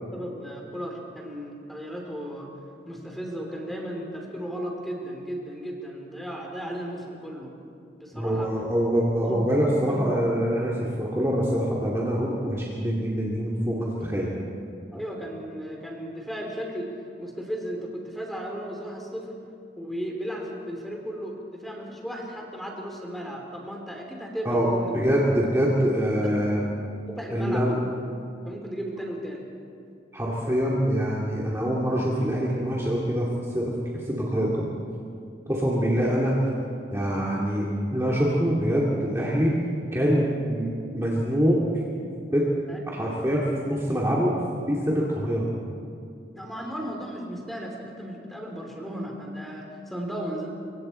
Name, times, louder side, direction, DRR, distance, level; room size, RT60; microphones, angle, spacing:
voice 1, 0.1-2.6 2.8-7.6 7.9-8.5 9.2-9.4 9.8-10.1 14.9-16.9 17.2-19.3 19.7-24.9 27.1-27.9 28.4-29.4 42.7-42.8 46.3-50.5, equal, ahead, 0 dB, 3.2 m, -35 dB
voice 2, 8.1-14.3 24.4-24.7 24.9-26.6 27.3-27.8 30.1-33.3 33.5-33.7 34.1-34.6 35.5-36.4 36.9-39.6 39.9-41.6 42.3-42.5 42.9-44.3 44.7-45.5, equal, 15° right, -5 dB, 2.4 m, -24 dB
26.0 x 24.0 x 4.4 m, 2.5 s
head